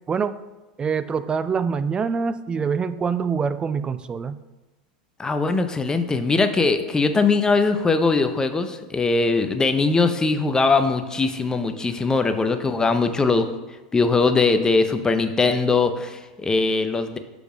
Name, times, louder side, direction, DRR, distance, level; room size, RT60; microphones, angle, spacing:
voice 1, 0.1-0.4 0.8-4.4, right 6 dB, 25° right, 13 dB, 0.4 m, -25 dB
voice 2, 5.2-13.5 13.9-17.2, left 3 dB, 15° left, 8 dB, 0.7 m, -21 dB
6.7 x 5.1 x 6.1 m, 1.1 s
hypercardioid pair, 95°, 4 cm